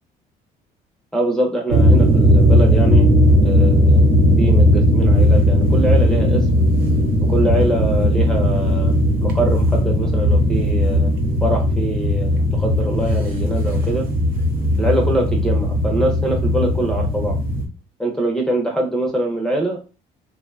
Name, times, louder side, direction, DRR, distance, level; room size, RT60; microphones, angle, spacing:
voice 1, 1.1-3.1 3.4-4.0 4.4-6.4 7.3-8.9 9.2-11.1 11.4-14.1 14.8-17.4 18.0-19.8, right 1 dB, 5° left, -1 dB, 0.5 m, -23 dB
sound 1, 1.7-17.7, equal, 60° right, 0.6 m, -16 dB
2.5 x 2.1 x 2.4 m, 0.32 s
cardioid pair, 110°, 17 cm